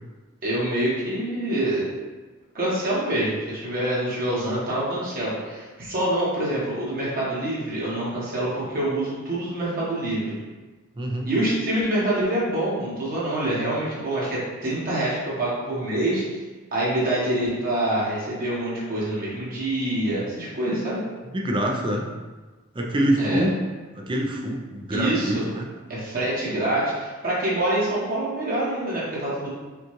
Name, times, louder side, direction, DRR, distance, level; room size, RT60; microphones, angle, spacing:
voice 1, 0.4-1.9 2.5-10.4 11.2-16.4 16.7-21.0 23.2-23.5 24.9-25.4 25.9-29.5, right 1 dB, 40° right, -7 dB, 1.2 m, -26 dB
voice 2, 11.0-11.3 21.3-22.1 22.7-23.6 23.9-25.7, right 1 dB, 20° right, 0 dB, 0.4 m, -25 dB
5.1 x 2.4 x 3.0 m, 1.3 s
head